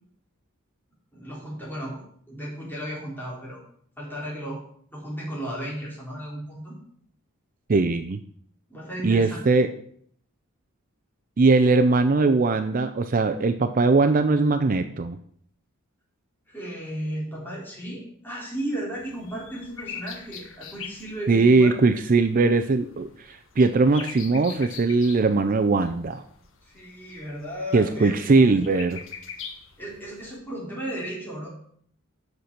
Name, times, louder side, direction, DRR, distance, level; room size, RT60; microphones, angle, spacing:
voice 1, 1.1-2.0 2.3-3.6 4.0-4.6 4.9-6.7 8.7-9.6 16.5-21.9 26.6-28.6 29.8-31.5, equal, 10° left, -4 dB, 3.6 m, -35 dB
voice 2, 7.7-8.2 9.0-9.7 11.4-15.2 21.3-26.2 27.7-29.0, right 3 dB, 40° right, 9 dB, 0.5 m, -20 dB
sound 1, 18.9-30.4, left 7 dB, 65° left, 1.4 m, -44 dB
8.0 x 5.8 x 6.7 m, 0.62 s
head